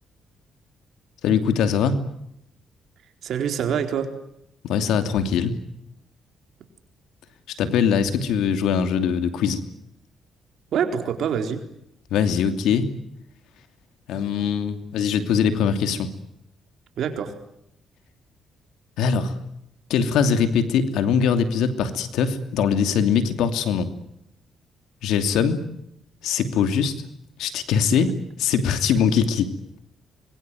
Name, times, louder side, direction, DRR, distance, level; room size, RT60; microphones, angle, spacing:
voice 1, 1.2-2.0 4.6-5.6 7.6-9.6 12.1-12.9 14.1-16.1 19.0-19.3 19.9-23.9 25.0-25.6 26.2-26.9 27.4-28.1 28.4-29.5, left 7 dB, 85° left, 9 dB, 2.8 m, -22 dB
voice 2, 3.2-4.1 10.7-11.6 17.0-17.3, right 7 dB, 70° right, 6 dB, 4.1 m, -25 dB
25.5 x 22.0 x 9.2 m, 0.79 s
cardioid pair, 90°, 0 cm